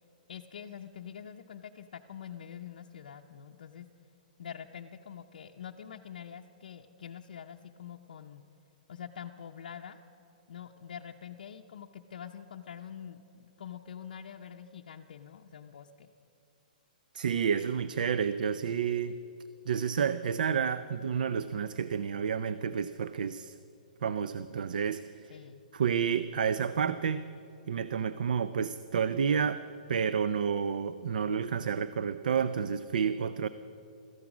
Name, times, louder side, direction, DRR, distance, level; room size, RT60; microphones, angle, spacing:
voice 1, 0.3-3.9 4.4-8.4 8.9-10.0 10.5-16.1 25.3-25.6, left 8 dB, 65° left, 1 dB, 0.6 m, -45 dB
voice 2, 17.1-19.2 19.7-23.5 24.0-25.3 25.7-27.2 27.7-29.6 29.9-33.5, right 7 dB, 70° right, 13 dB, 0.5 m, -30 dB
16.5 x 14.0 x 6.0 m, 2.7 s
hypercardioid pair, 175°, 5 cm